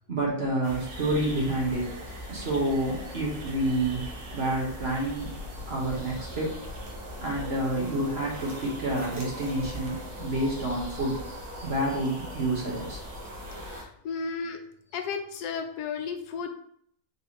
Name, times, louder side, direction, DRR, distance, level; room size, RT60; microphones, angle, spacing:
voice 1, 0.1-1.9 2.3-5.3 5.7-6.8 7.2-13.0, right 1 dB, 45° right, -3 dB, 1.3 m, -29 dB
sound 1, 0.6-13.8, equal, 80° right, 1.5 m, -40 dB
voice 2, 13.6-14.6 14.9-16.5, left 5 dB, 85° left, 5 dB, 1.2 m, -34 dB
4.1 x 3.3 x 3.0 m, 0.65 s
omnidirectional pair, 1.6 m